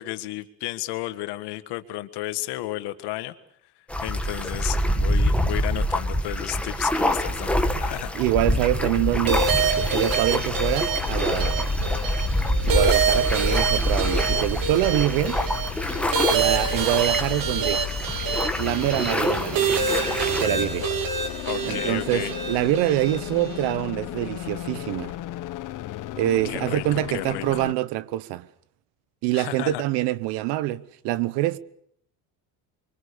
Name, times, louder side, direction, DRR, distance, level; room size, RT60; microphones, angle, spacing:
voice 1, 0.0-3.3 4.0-8.2 20.8-20.9 21.4-22.3 26.4-27.6 29.3-29.8, left 16 dB, 75° left, 1.7 m, -33 dB
sound 1, 3.9-20.5, equal, 5° left, 1.7 m, -26 dB
voice 2, 8.1-11.7 12.6-15.4 16.3-17.8 18.6-19.7 20.4-20.9 21.6-25.1 26.2-28.5 29.2-31.6, right 14 dB, 80° right, 1.1 m, -25 dB
sound 2, 8.4-27.7, left 13 dB, 50° left, 1.0 m, -35 dB
sound 3, 9.3-23.7, right 6 dB, 55° right, 2.6 m, -27 dB
25.0 x 24.0 x 6.8 m
cardioid pair, 130°, 41 cm